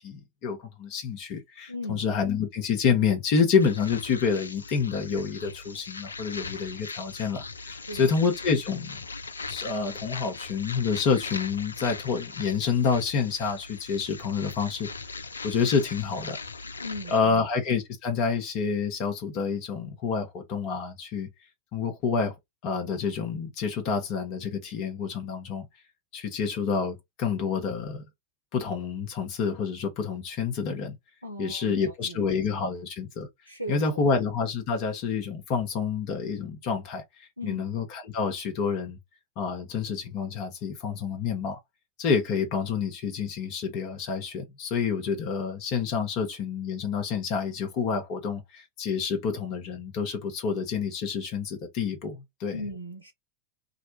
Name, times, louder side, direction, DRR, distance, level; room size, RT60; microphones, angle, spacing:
voice 1, 0.0-9.0 9.5-14.9 15.4-16.4 17.1-21.3 21.7-22.3 22.6-25.7 26.1-28.0 28.5-31.0 31.4-33.3 33.7-39.0 39.4-41.6 42.0-52.6, left 6 dB, 40° left, 1.0 m, -28 dB
voice 2, 1.7-2.0 7.9-8.1 16.8-17.5 31.2-32.3 32.6-32.7 33.5-34.1 37.4-37.6 52.5-53.1, left 1 dB, 85° right, 0.5 m, -38 dB
sound 1, 3.6-17.2, left 4 dB, 75° left, 0.4 m, -40 dB
2.6 x 2.2 x 4.0 m
figure-of-eight pair, 90°, 0 cm